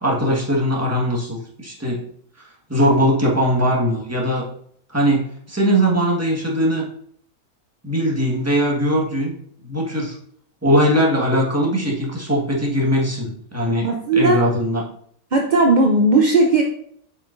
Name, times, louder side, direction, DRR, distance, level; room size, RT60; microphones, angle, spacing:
voice 1, 0.0-2.0 2.4-4.4 4.9-5.2 5.5-6.8 7.8-9.4 9.6-10.1 10.6-14.8, equal, 10° right, -3 dB, 1.4 m, -20 dB
voice 2, 13.8-14.5 15.3-16.6, right 2 dB, 50° right, 1 dB, 0.5 m, -16 dB
7.0 x 5.7 x 2.5 m, 0.64 s
omnidirectional pair, 1.6 m